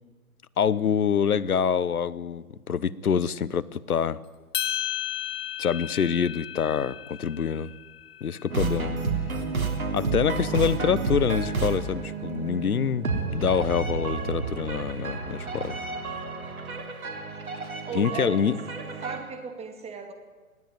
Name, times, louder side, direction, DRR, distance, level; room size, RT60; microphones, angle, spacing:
voice 1, 0.6-4.2 5.6-7.7 8.2-8.9 9.9-15.8 17.9-18.6, left 7 dB, 75° left, 19 dB, 1.0 m, -26 dB
sound 1, 4.5-9.0, left 10 dB, 10° left, 0.9 m, -34 dB
sound 2, 8.5-19.2, right 4 dB, 70° right, 3.7 m, -31 dB
voice 2, 10.3-10.7 17.9-18.5 19.0-20.1, right 6 dB, 15° right, 7 dB, 2.5 m, -37 dB
20.0 x 15.5 x 9.6 m, 1.4 s
figure-of-eight pair, 125°, 44 cm